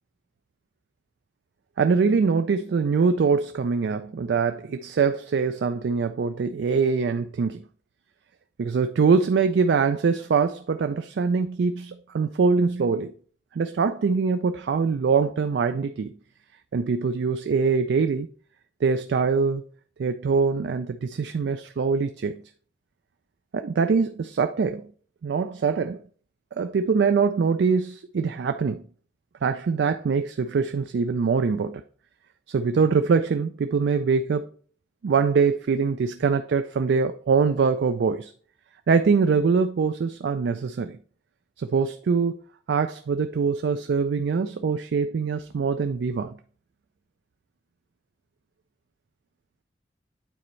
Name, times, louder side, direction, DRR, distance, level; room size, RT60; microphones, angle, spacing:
voice 1, 1.8-7.6 8.6-13.1 13.5-16.1 16.7-18.3 18.8-19.6 20.0-22.4 23.5-24.9 25.2-26.0 26.5-28.8 29.4-31.8 32.5-34.5 35.0-38.3 38.9-41.0 41.6-42.4 42.7-46.4, right 5 dB, 80° right, 0.4 m, -23 dB
9.1 x 4.2 x 3.1 m
head